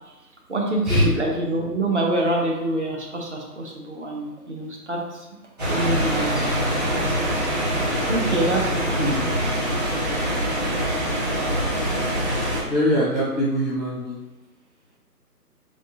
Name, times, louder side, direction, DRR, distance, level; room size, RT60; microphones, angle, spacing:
voice 1, 0.5-5.0 5.7-6.4 8.1-9.1, right 2 dB, 45° right, -1 dB, 0.7 m, -25 dB
sound 1, 5.6-12.6, equal, 25° right, 1.1 m, -24 dB
voice 2, 12.6-14.2, equal, ahead, -11 dB, 0.5 m, -22 dB
3.8 x 3.5 x 2.7 m, 1.0 s
figure-of-eight pair, 155°, 48 cm